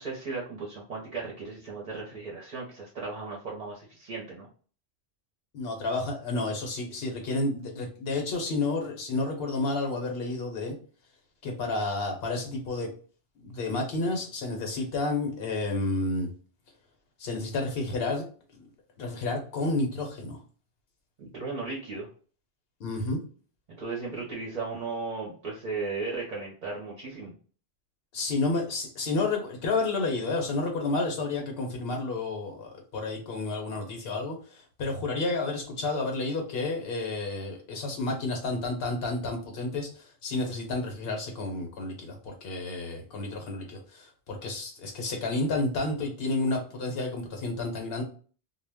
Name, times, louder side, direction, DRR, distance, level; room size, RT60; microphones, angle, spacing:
voice 1, 0.0-4.5 21.2-22.1 23.8-27.3, right 4 dB, 50° right, -2 dB, 0.7 m, -36 dB
voice 2, 5.5-10.7 11.4-12.9 13.4-16.3 17.2-18.2 19.0-20.4 22.8-23.2 28.1-48.0, left 2 dB, 65° left, 2 dB, 0.9 m, -30 dB
2.1 x 2.1 x 3.3 m, 0.41 s
omnidirectional pair, 1.1 m